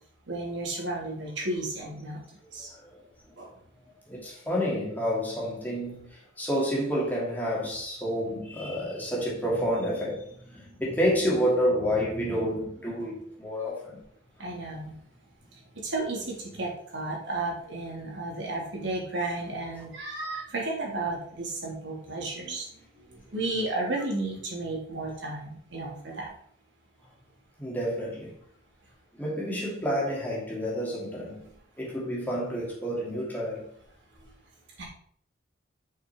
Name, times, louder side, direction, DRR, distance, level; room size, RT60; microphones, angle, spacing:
voice 1, 0.3-2.2 2.5-2.7 3.4-3.5 13.0-13.1 14.4-14.9 15.7-26.3 34.2-34.3 34.8-34.9, right 2 dB, 75° right, 3.2 m, -33 dB
voice 2, 4.1-14.0 27.6-28.4 29.1-31.5 31.8-33.7, equal, 10° left, 2.6 m, -29 dB
7.2 x 6.0 x 4.7 m
head